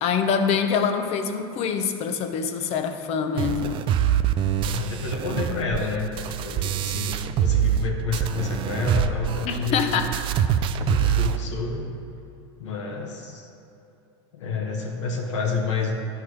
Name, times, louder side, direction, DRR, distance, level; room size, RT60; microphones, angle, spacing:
voice 1, 0.0-3.9 9.4-10.1, left 6 dB, 45° left, 7 dB, 0.8 m, -25 dB
sound 1, 3.4-7.8 8.1-11.4, right 9 dB, 35° right, 0.4 m, -25 dB
voice 2, 4.6-10.0 10.8-11.8 12.6-13.5 14.3-15.9, left 4 dB, 90° left, 0 dB, 1.2 m, -29 dB
11.0 x 4.7 x 4.8 m, 2.9 s
supercardioid pair, 120°, 15 cm